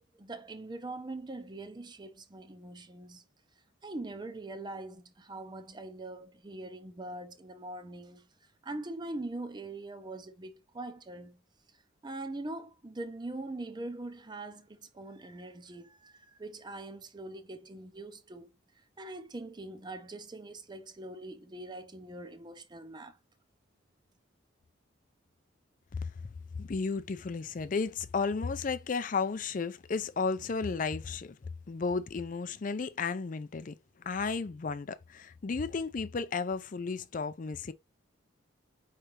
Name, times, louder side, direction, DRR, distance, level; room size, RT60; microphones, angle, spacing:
voice 1, 0.0-3.2 3.8-8.3 8.6-11.4 12.0-18.5 19.0-23.2, right 2 dB, 20° right, 0.5 m, -42 dB
voice 2, 25.9-31.4 31.7-37.7, left 4 dB, 40° left, 0.4 m, -33 dB
4.9 x 3.3 x 2.9 m
head